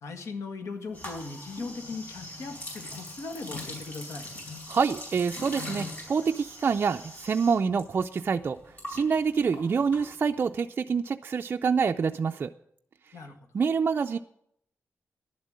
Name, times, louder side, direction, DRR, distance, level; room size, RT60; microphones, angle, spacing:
voice 1, 0.0-4.3 13.1-13.4, left 3 dB, 85° left, 6 dB, 1.7 m, -38 dB
sound 1, 0.9-7.8 8.1-10.5, left 1 dB, 35° left, 4.5 m, -41 dB
voice 2, 4.7-8.6 8.9-12.5 13.5-14.2, right 5 dB, 45° right, 5 dB, 0.4 m, -26 dB
11.0 x 7.4 x 9.5 m, 0.72 s
wide cardioid pair, 155°, 5 cm